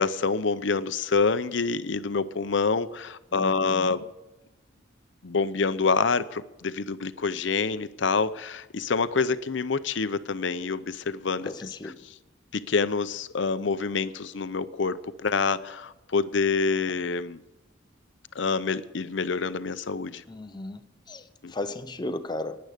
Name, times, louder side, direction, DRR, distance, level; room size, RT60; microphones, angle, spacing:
voice 1, 0.0-4.0 5.2-12.1 12.5-17.4 18.3-20.2 21.4-21.5, left 4 dB, 60° left, 14 dB, 0.6 m, -27 dB
voice 2, 3.3-3.9 11.4-12.0 20.3-20.8 21.1-21.2 21.5-22.6, left 2 dB, 20° left, 10 dB, 0.6 m, -35 dB
16.0 x 10.0 x 5.1 m, 1.0 s
head